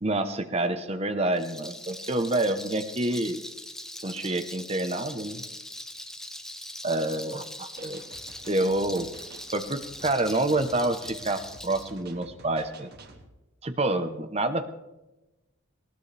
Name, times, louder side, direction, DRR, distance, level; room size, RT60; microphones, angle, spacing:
voice 1, 0.0-3.4 4.0-5.4 6.8-8.0 8.5-9.1 9.5-12.9 13.6-14.7, right 2 dB, 30° right, 9 dB, 0.9 m, -28 dB
Rattle, 1.3-11.9, left 1 dB, ahead, 0.7 m, -41 dB
sound 1, 7.8-13.3, right 2 dB, 50° right, 1.8 m, -50 dB
19.5 x 19.5 x 3.4 m, 1.0 s
head